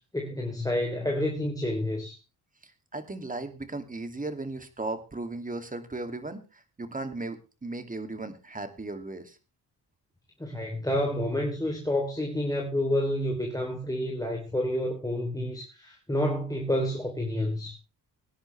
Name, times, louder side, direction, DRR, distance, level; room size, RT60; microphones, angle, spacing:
voice 1, 0.1-2.2 10.4-17.8, left 1 dB, 10° left, 3.2 m, -29 dB
voice 2, 2.9-9.4, right 2 dB, 20° right, 2.5 m, -36 dB
20.0 x 10.5 x 3.3 m
cardioid pair, 80°, 39 cm